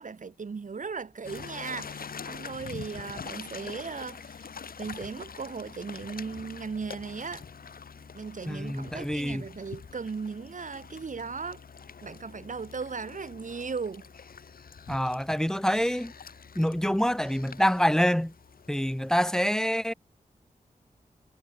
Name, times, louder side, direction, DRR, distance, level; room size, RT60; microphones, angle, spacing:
voice 1, 0.0-4.5 4.8-7.5 8.1-11.6 12.0-14.1, right 5 dB, 60° right, 2.0 m, -37 dB
sound 1, 1.2-19.3, left 6 dB, 80° left, 4.4 m, -45 dB
voice 2, 8.5-9.4 14.9-16.1 16.6-18.3 18.7-19.9, equal, 5° left, 0.7 m, -26 dB
wide cardioid pair, 70°, 15 cm